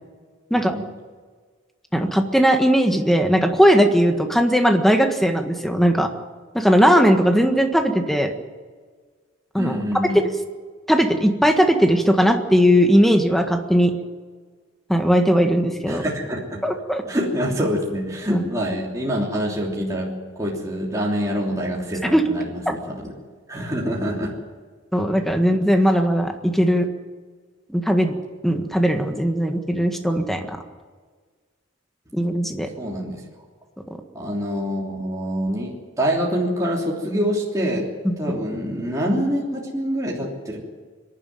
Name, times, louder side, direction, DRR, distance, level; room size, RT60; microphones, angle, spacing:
voice 1, 0.5-0.8 9.6-10.2 15.9-16.6 17.1-23.1 23.5-24.3 32.6-33.2 34.1-37.9 38.2-40.6, equal, 15° right, -3 dB, 3.2 m, -25 dB
voice 2, 1.9-6.1 6.5-8.3 9.5-9.8 10.1-10.3 10.9-13.9 14.9-16.1 16.6-17.0 18.3-18.4 22.0-22.2 24.9-26.8 27.7-28.1 28.4-30.4 32.1-32.7 38.0-38.4, equal, ahead, 5 dB, 1.6 m, -18 dB
24.5 x 11.5 x 9.4 m, 1.5 s
head